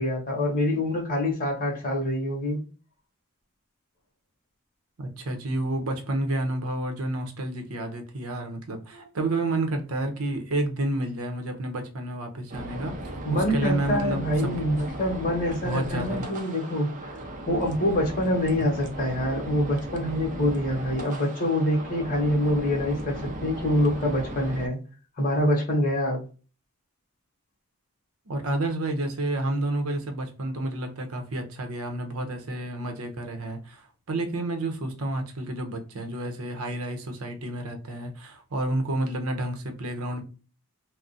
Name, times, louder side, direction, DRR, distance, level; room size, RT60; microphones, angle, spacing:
voice 1, 0.0-2.6 8.9-9.0 13.2-16.9 17.5-24.8 25.2-26.2, left 1 dB, 40° left, 0.9 m, -25 dB
voice 2, 5.0-14.5 15.6-16.3 28.3-40.2, right 1 dB, 70° right, 0.7 m, -30 dB
sound 1, 12.5-24.7, right 1 dB, 35° right, 0.5 m, -36 dB
2.4 x 2.0 x 3.8 m
head